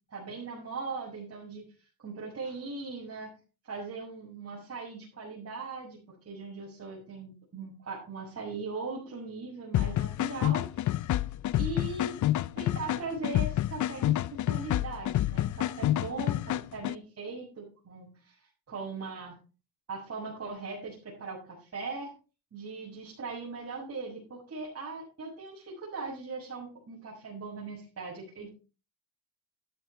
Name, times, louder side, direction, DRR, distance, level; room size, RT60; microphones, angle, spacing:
voice 1, 0.1-1.7 2.0-3.3 3.6-10.9 11.6-12.1 12.6-18.4 18.7-19.4 19.9-22.1 22.5-28.5, right 4 dB, 40° right, -6 dB, 7.1 m, -39 dB
sound 1, 9.7-16.9, left 14 dB, 50° left, 0.6 m, -29 dB
12.5 x 11.5 x 3.5 m, 0.34 s
supercardioid pair, 80°, 38 cm